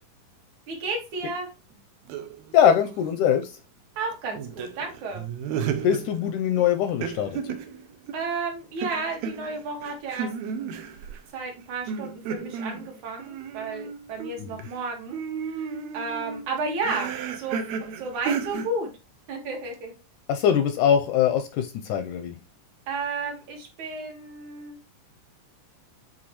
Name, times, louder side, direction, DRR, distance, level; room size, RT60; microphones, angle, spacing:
voice 1, 0.7-1.5 4.0-5.2 8.1-10.3 11.3-15.2 15.5-15.7 15.9-18.9 19.3-19.9 22.9-24.8, right 3 dB, 60° right, 1 dB, 2.8 m, -32 dB
sound 1, 2.1-3.2 3.4-3.6 4.3-8.4 8.8-11.2 11.9-14.8 15.1-18.7, right 7 dB, 85° right, 1.5 m, -34 dB
voice 2, 2.5-3.6 5.8-7.4 14.4-14.5 20.3-22.4, left 9 dB, 80° left, 7 dB, 1.9 m, -22 dB
8.7 x 4.0 x 3.0 m, 0.28 s
omnidirectional pair, 3.9 m